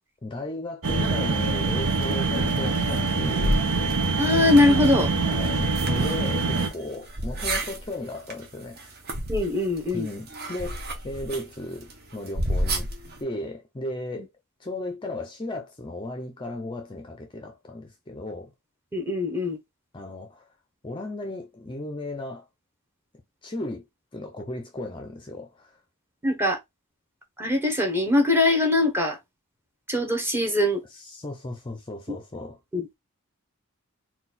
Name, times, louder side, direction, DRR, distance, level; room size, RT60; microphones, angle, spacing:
voice 1, 0.2-3.6 5.2-8.9 9.9-12.9 13.2-14.3 14.6-18.5 19.9-20.5 20.8-22.5 23.4-23.9 24.1-25.8 30.9-32.6, left 2 dB, 20° left, 0.5 m, -35 dB
sound 1, 0.8-6.7, right 3 dB, 75° right, 0.8 m, -24 dB
sound 2, 1.8-13.2, right 1 dB, 45° right, 1.0 m, -34 dB
voice 2, 4.2-5.1 9.3-10.1 18.9-19.6 26.2-26.6 27.4-29.2 29.9-30.8 32.7-32.9, left 2 dB, 10° right, 0.9 m, -22 dB
4.0 x 2.3 x 4.1 m
head